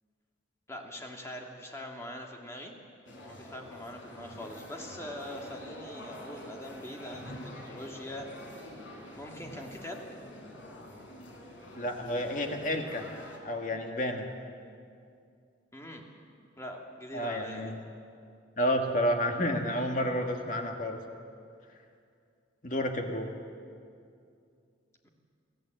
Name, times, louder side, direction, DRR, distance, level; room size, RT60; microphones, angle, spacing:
voice 1, 0.7-2.7 3.3-8.3 9.1-10.0 15.7-16.1 16.6-17.7 25.0-25.1, left 1 dB, 15° left, 1 dB, 1.9 m, -42 dB
sound 1, 3.0-13.4, left 1 dB, 80° left, 3.7 m, -46 dB
voice 2, 11.7-13.0 13.4-14.3 17.1-17.8 18.6-21.0 22.6-23.3, equal, 40° left, 3 dB, 1.8 m, -30 dB
24.5 x 15.0 x 7.9 m, 2.4 s
head